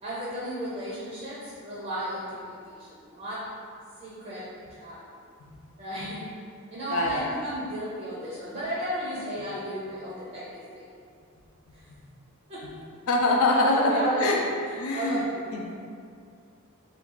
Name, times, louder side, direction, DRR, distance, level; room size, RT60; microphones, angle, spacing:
voice 1, 0.0-3.5 4.0-4.5 4.8-5.0 5.8-6.3 6.7-10.8 11.7-11.8 12.5-12.6 13.5-15.5, equal, 30° right, -8 dB, 0.5 m, -33 dB
voice 2, 6.9-7.4 13.1-14.4 14.7-15.2 15.5-15.7, left 2 dB, 70° left, -1 dB, 0.5 m, -25 dB
2.7 x 2.3 x 3.8 m, 2.3 s
head